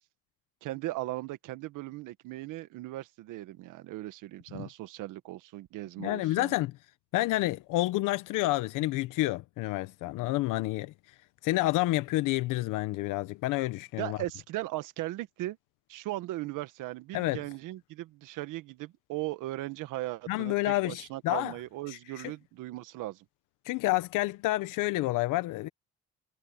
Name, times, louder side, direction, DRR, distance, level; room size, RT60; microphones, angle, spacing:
voice 1, 0.6-6.5 14.0-15.6 15.9-23.2, right 17 dB, 80° right, 1.7 m, -38 dB
voice 2, 6.0-6.7 7.1-10.9 11.4-14.2 17.1-17.4 20.3-21.5 21.9-22.2 23.6-25.7, left 18 dB, 80° left, 1.0 m, -29 dB
supercardioid pair, 65°, 31 cm